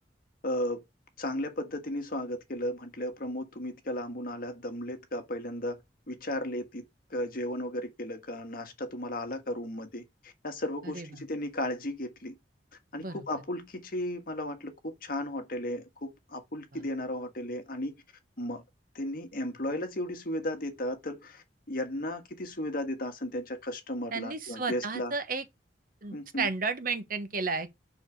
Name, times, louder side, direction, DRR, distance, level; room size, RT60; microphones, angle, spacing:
voice 1, 0.4-0.8 1.2-5.8 6.1-6.8 7.1-12.3 12.9-17.9 18.4-18.6 18.9-25.1 26.1-26.5, left 1 dB, 55° left, 1.6 m, -35 dB
voice 2, 24.1-25.4 26.0-27.7, right 4 dB, 50° right, 1.2 m, -33 dB
6.9 x 6.1 x 4.7 m
head